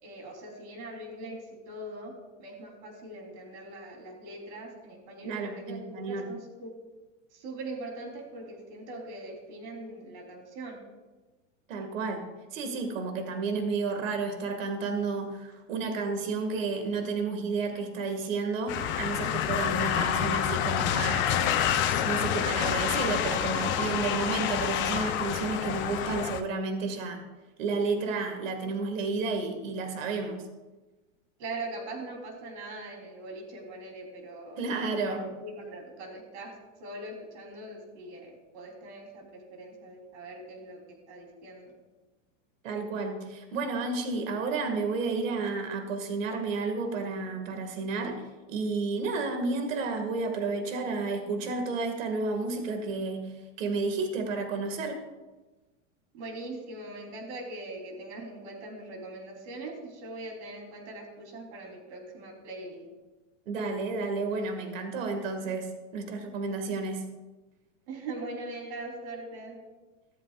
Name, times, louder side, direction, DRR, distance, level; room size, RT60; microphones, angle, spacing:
voice 1, 0.0-2.1 2.4-6.7 7.3-10.8 31.4-34.6 35.1-41.7 56.1-62.8 67.9-69.6, right 2 dB, 60° right, 1 dB, 3.9 m, -41 dB
voice 2, 5.2-6.2 11.7-12.2 12.5-21.4 22.0-27.2 27.6-30.5 34.6-35.2 42.6-53.3 53.6-55.0 63.5-67.0, right 4 dB, 80° right, 5 dB, 2.2 m, -31 dB
sound 1, 18.7-26.4, left 9 dB, 30° left, 0.7 m, -28 dB
14.5 x 13.5 x 2.5 m, 1.2 s
supercardioid pair, 150°, 38 cm